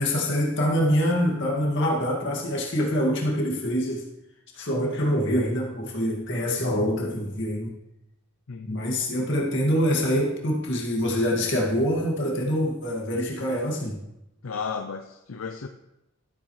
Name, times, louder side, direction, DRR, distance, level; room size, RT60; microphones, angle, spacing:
voice 1, 0.0-4.0 4.5-7.7 8.7-14.0, equal, 60° left, -1 dB, 2.1 m, -25 dB
voice 2, 8.5-8.9 14.4-15.7, left 5 dB, 80° left, 5 dB, 0.6 m, -34 dB
13.5 x 7.8 x 3.2 m, 0.90 s
head